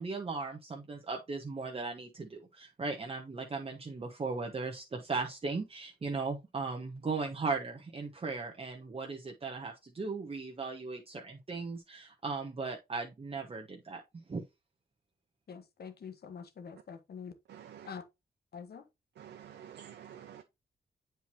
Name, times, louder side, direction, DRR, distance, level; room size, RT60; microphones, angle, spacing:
voice 1, 0.0-14.0 14.3-14.4, right 4 dB, 35° right, 1.2 m, -37 dB
voice 2, 15.5-17.3 17.8-18.0 18.5-18.9, left 6 dB, 65° left, 1.3 m, -45 dB
voice 3, 17.5-17.9 19.2-20.4, right 9 dB, 90° right, 0.7 m, -49 dB
8.0 x 4.5 x 2.8 m
cardioid pair, 85°, 18 cm